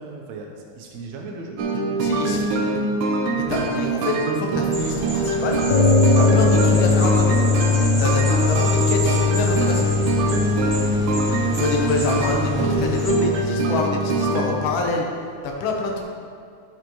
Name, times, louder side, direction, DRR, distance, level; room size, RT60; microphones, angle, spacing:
voice 1, 0.0-1.6 11.0-11.5 11.8-12.4, right 4 dB, 75° right, 1 dB, 2.1 m, -37 dB
sound 1, 1.6-14.4, right 3 dB, 90° right, 2.1 m, -24 dB
voice 2, 2.0-2.6 3.3-5.6 6.2-7.4 8.0-9.9 11.6-15.1 15.4-16.0, left 3 dB, 60° left, 0 dB, 1.4 m, -26 dB
sound 2, 4.7-13.1, right 1 dB, 20° right, 0.9 m, -31 dB
sound 3, 5.7-14.8, left 4 dB, 85° left, 2.2 m, -21 dB
13.0 x 5.8 x 3.1 m, 2.2 s
omnidirectional pair, 3.4 m